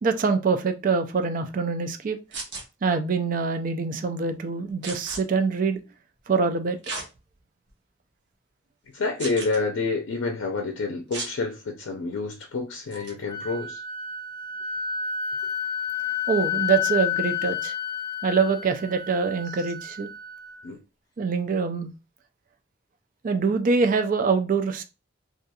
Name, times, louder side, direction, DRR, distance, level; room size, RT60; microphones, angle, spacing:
voice 1, 0.0-2.2 2.8-5.8 6.3-6.8 16.3-17.7 18.2-20.1 21.2-21.9 23.2-24.8, right 5 dB, 45° right, 0.3 m, -24 dB
sound 1, 2.3-2.6 4.8-5.2 6.8-7.1 7.7-7.8 9.2-9.6 11.1-11.3 12.9-13.1, right 3 dB, 65° right, 0.8 m, -34 dB
voice 2, 8.9-13.8 20.6-20.8, left 3 dB, 90° left, 0.5 m, -28 dB
Wind instrument woodwind instrument, 12.9-20.7, left 7 dB, 20° left, 0.4 m, -30 dB
2.4 x 2.3 x 2.7 m
head